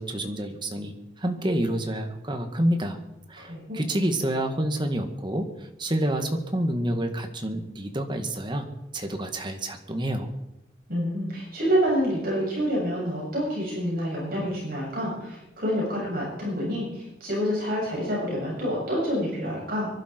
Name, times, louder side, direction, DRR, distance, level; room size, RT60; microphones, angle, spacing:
voice 1, 0.0-3.0 3.3-8.7 8.9-10.3, right 1 dB, 25° right, 5 dB, 1.9 m, -28 dB
voice 2, 3.4-3.9 10.9-19.9, equal, 55° right, -4 dB, 7.7 m, -27 dB
24.0 x 12.0 x 4.6 m, 0.92 s
head